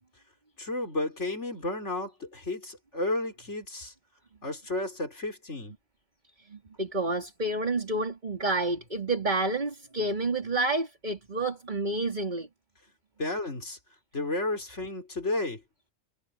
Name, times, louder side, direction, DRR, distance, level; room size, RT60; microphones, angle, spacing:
voice 1, 0.6-3.9 4.4-5.7 13.2-13.8 14.1-15.6, left 2 dB, 65° left, 5.4 m, -32 dB
voice 2, 6.4-12.5, right 2 dB, 35° right, 3.4 m, -29 dB
omnidirectional pair, 1.3 m